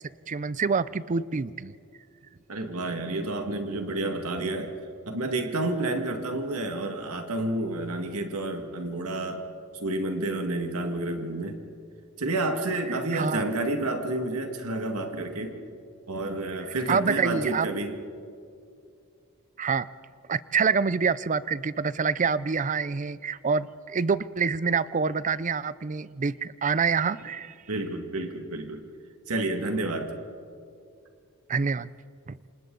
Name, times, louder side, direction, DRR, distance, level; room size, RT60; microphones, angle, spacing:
voice 1, 0.3-1.7 13.1-13.4 16.9-17.7 19.6-19.9 20.3-27.5 31.5-31.9 32.3-32.4, right 5 dB, 35° right, 18 dB, 0.5 m, -26 dB
voice 2, 2.5-4.7 5.1-9.4 9.7-11.6 12.2-15.6 16.1-18.0 27.7-28.8 29.3-30.1, right 2 dB, 85° right, 5 dB, 2.0 m, -30 dB
28.0 x 26.5 x 4.0 m, 2.5 s
head